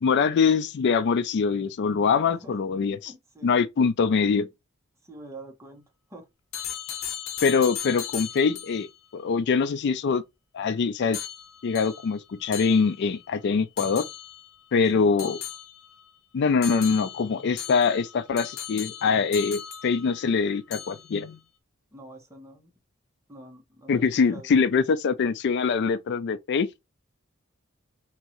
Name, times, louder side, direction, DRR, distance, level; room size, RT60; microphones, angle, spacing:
voice 1, 0.0-3.1 3.4-4.5 7.4-8.9 9.1-10.2 10.5-11.2 11.6-14.0 14.7-15.4 16.3-21.4 23.9-26.7, left 5 dB, 55° left, 0.3 m, -23 dB
voice 2, 3.1-3.6 5.0-6.3 14.9-15.3 21.9-22.7 23.3-24.8, right 2 dB, 15° right, 1.1 m, -46 dB
sound 1, 6.5-8.9 11.1-13.2 13.8-14.5 15.2-16.1 16.6-20.4 20.7-21.3, left 9 dB, 75° left, 0.7 m, -37 dB
3.5 x 3.0 x 2.9 m
head